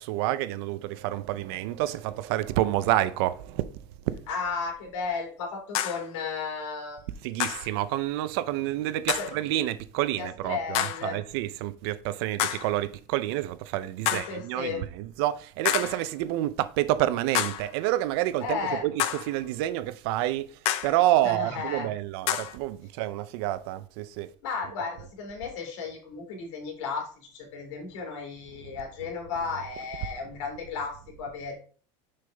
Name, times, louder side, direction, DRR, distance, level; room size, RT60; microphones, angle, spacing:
voice 1, 0.0-4.2 7.2-24.3 28.6-28.8, right 14 dB, 55° right, 0.6 m, -28 dB
voice 2, 4.3-7.1 9.2-9.3 10.2-11.2 14.1-14.8 18.4-18.8 21.2-21.9 24.4-31.6, left 5 dB, 80° left, 3.0 m, -34 dB
sound 1, 4.3-4.4 5.7-6.1 7.4-7.7 9.1-9.4 10.7-11.1 12.4-12.8 14.1-14.4 15.6-16.1 17.3-17.7 19.0-19.4 20.7-21.0 22.3-22.6, left 12 dB, 40° left, 0.5 m, -29 dB
6.5 x 5.5 x 3.4 m
cardioid pair, 175°, 15 cm